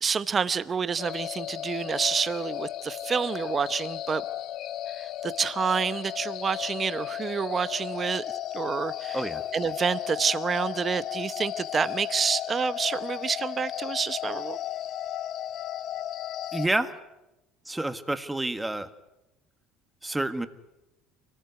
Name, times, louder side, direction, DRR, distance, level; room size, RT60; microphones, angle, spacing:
voice 1, 0.0-4.2 5.0-8.2 8.5-9.2 9.5-14.6, right 6 dB, 30° right, 15 dB, 0.9 m, -28 dB
sound 1, 1.0-16.7, left 12 dB, 55° left, 1.0 m, -35 dB
voice 2, 16.5-16.9 17.6-18.9 20.0-20.5, right 2 dB, 10° right, 10 dB, 1.5 m, -28 dB
25.0 x 19.5 x 9.4 m, 0.95 s
cardioid pair, 120°, 0 cm